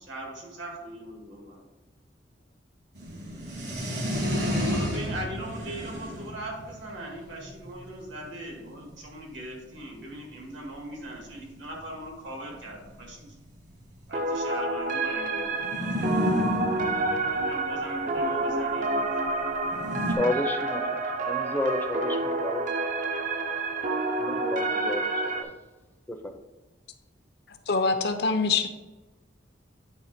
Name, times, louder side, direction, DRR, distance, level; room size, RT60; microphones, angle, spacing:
voice 1, 0.0-1.6 3.4-4.3 4.6-13.3 14.1-16.1 17.3-19.3, right 1 dB, 80° right, -1 dB, 1.9 m, -40 dB
sound 1, 2.9-9.1 9.7-9.8 10.0-10.1 10.3-10.5 11.4-11.5 11.7-11.8 12.6-14.1 15.6-18.2 19.6-20.1, equal, 60° right, 1.5 m, -31 dB
sound 2, 14.1-25.4, right 2 dB, 40° right, 0.5 m, -28 dB
voice 2, 20.2-21.0 21.3-22.7 24.2-25.5 26.1-26.3, left 1 dB, 10° left, 4 dB, 0.5 m, -31 dB
voice 3, 27.7-28.7, left 4 dB, 60° left, 7 dB, 0.6 m, -24 dB
9.0 x 3.3 x 4.2 m, 1.2 s
head